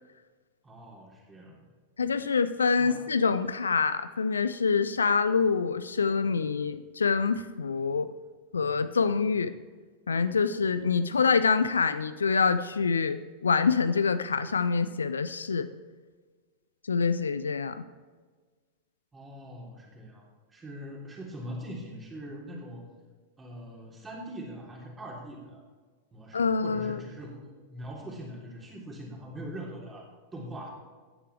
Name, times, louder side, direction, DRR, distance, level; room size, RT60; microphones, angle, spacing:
voice 1, 0.6-1.6 2.8-3.0 19.1-22.8 23.4-25.6 26.1-30.7, equal, 15° right, -2 dB, 3.3 m, -42 dB
voice 2, 2.0-8.1 8.5-9.5 10.1-15.7 16.9-17.8 26.3-27.0, left 5 dB, 75° left, 13 dB, 0.5 m, -26 dB
16.0 x 10.0 x 3.4 m, 1.4 s
figure-of-eight pair, 90°, 0 cm